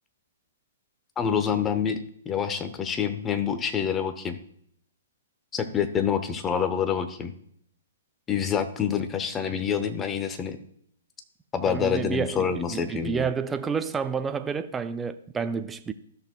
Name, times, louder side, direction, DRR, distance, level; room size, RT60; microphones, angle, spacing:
voice 1, 1.2-4.4 5.5-7.3 8.3-10.6 11.5-13.3, left 7 dB, 20° left, 0.8 m, -27 dB
voice 2, 11.7-15.9, right 5 dB, 15° right, 0.5 m, -29 dB
14.5 x 6.4 x 2.3 m
figure-of-eight pair, 120°, 0 cm